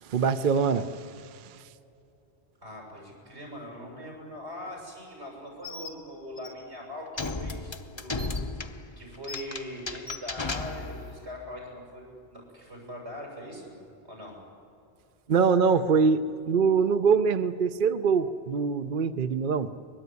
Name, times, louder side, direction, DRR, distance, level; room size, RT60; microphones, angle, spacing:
voice 1, 0.0-1.6 15.3-16.2 16.5-19.7, right 5 dB, 55° right, 10 dB, 0.8 m, -24 dB
voice 2, 2.6-8.4 9.0-13.7 14.0-14.4, left 1 dB, 90° right, -1 dB, 8.0 m, -41 dB
Bird, 5.6-5.9 6.4-6.5 7.2-7.3 8.2-8.4 9.3-9.4 10.1-10.2, left 3 dB, 75° left, 2.4 m, -40 dB
sound 1, 7.2-11.3, left 3 dB, 30° left, 0.8 m, -35 dB
23.0 x 21.0 x 9.5 m, 2.7 s
omnidirectional pair, 1.1 m